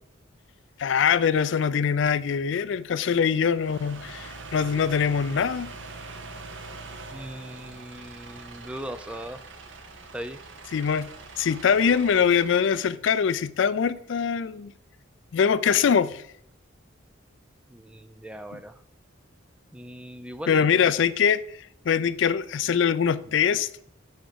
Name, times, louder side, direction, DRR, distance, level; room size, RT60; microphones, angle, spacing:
voice 1, 0.8-5.7 10.7-14.7 15.3-16.2 20.5-21.4 21.9-23.7, left 7 dB, 70° left, 0.4 m, -23 dB
sound 1, 3.5-12.8, right 3 dB, 70° right, 1.0 m, -43 dB
voice 2, 7.1-9.4 10.1-10.4 17.7-18.8 19.7-20.8, equal, 5° right, 0.3 m, -39 dB
6.3 x 4.7 x 6.7 m
head